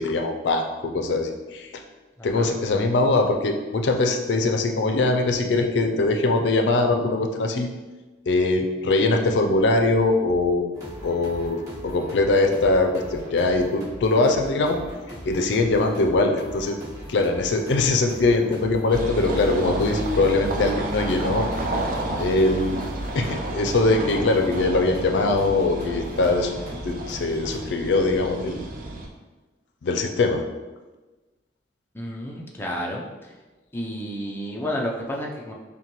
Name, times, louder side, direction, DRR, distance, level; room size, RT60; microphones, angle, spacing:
voice 1, 0.0-1.8 2.2-7.7 8.3-10.7 11.0-14.8 15.3-16.8 17.1-21.5 22.2-22.8 23.1-26.5 26.8-28.6 29.8-30.4, left 2 dB, 80° left, 4 dB, 0.4 m, -22 dB
voice 2, 2.2-2.5 31.9-33.0 33.7-35.5, equal, 15° left, -2 dB, 0.4 m, -31 dB
sound 1, 10.7-27.6, equal, 20° right, 1.5 m, -40 dB
sound 2, 18.9-29.1, right 2 dB, 50° right, 0.5 m, -31 dB
5.7 x 2.2 x 3.0 m, 1.2 s
head